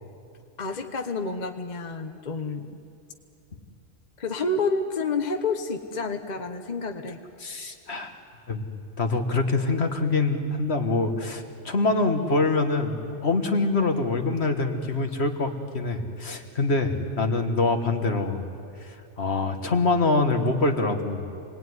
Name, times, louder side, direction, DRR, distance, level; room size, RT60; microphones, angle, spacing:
voice 1, 0.6-2.7 4.2-7.2, left 3 dB, 40° left, 6 dB, 1.1 m, -29 dB
voice 2, 7.4-8.2 8.5-8.6 9.0-18.4 18.8-21.3, left 3 dB, 55° left, 5 dB, 1.9 m, -25 dB
28.0 x 20.0 x 9.6 m, 2.5 s
omnidirectional pair, 1.3 m